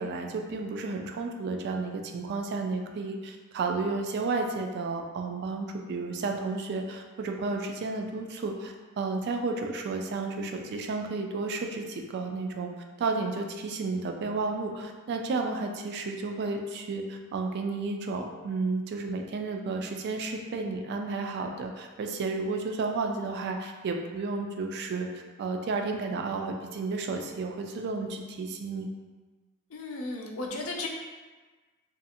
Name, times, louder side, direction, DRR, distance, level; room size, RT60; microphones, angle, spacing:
voice 1, 0.0-12.7 13.0-25.1 25.4-28.9, right 3 dB, 55° right, 3 dB, 0.3 m, -32 dB
voice 2, 29.7-30.9, left 2 dB, 75° left, 1 dB, 0.4 m, -34 dB
2.5 x 2.4 x 2.7 m, 1.3 s
head